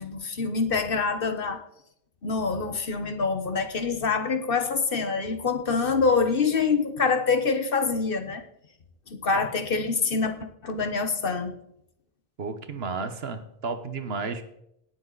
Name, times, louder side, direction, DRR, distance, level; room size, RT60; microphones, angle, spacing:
voice 1, 0.0-1.6 2.2-8.4 9.1-10.3 10.6-11.5, left 4 dB, 60° left, 8 dB, 1.3 m, -25 dB
voice 2, 12.4-14.4, right 4 dB, 70° right, 9 dB, 1.4 m, -32 dB
18.0 x 7.4 x 4.0 m, 0.75 s
omnidirectional pair, 1.1 m